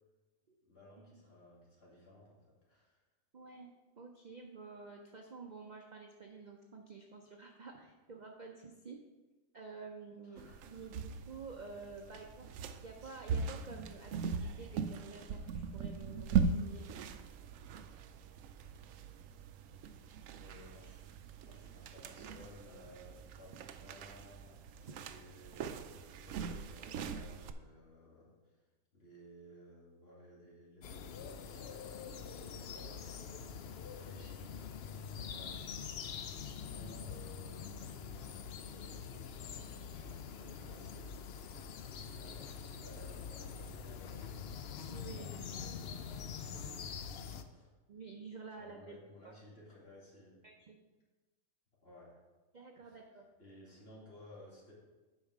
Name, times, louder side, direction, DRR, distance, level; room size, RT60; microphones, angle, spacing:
voice 1, 0.6-3.0 10.2-10.9 12.0-12.2 20.3-21.1 21.4-28.6 28.9-35.8 36.3-41.2 41.9-44.5 45.0-47.0 47.5-47.7 48.6-50.4 51.8-52.2 52.8-53.0 53.4-54.7, left 1 dB, 40° left, -6 dB, 2.7 m, -57 dB
voice 2, 3.3-9.0 9.5-16.9 44.9-45.3 47.9-49.0 50.4-50.8 52.5-53.2, right 4 dB, 45° right, 2 dB, 0.6 m, -50 dB
sound 1, 10.4-27.5, right 5 dB, 70° right, 0.9 m, -40 dB
sound 2, 30.8-47.4, left 6 dB, 65° left, 0.6 m, -45 dB
8.8 x 5.6 x 4.8 m, 1.2 s
omnidirectional pair, 1.6 m